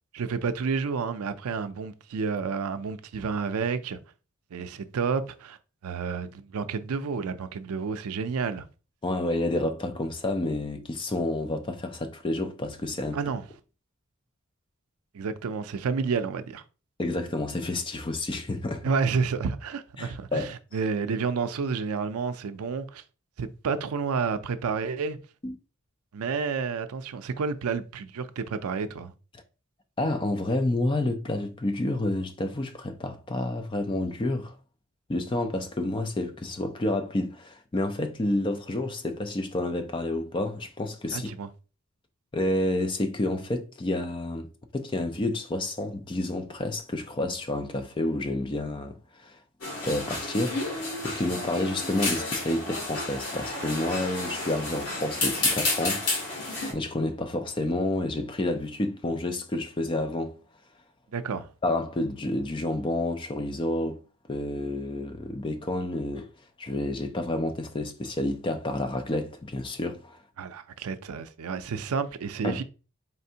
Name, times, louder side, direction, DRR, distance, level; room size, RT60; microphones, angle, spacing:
voice 1, 0.1-4.0 4.5-5.6 5.8-8.7 13.1-13.4 15.1-16.6 18.8-23.0 23.4-25.2 26.1-29.1 41.1-41.5 61.1-61.5 70.4-72.6, right 5 dB, 80° right, 0.4 m, -30 dB
voice 2, 9.0-13.2 17.0-18.8 20.0-20.5 25.4-25.6 30.0-34.5 35.1-41.3 42.3-44.5 44.7-49.4 49.8-56.4 56.7-60.4 61.6-64.0 64.3-66.3 66.6-70.2 72.4-72.6, left 1 dB, 20° left, 0.4 m, -29 dB
sound 1, 49.6-56.7, left 2 dB, 85° left, 1.7 m, -31 dB
4.3 x 3.3 x 2.8 m
head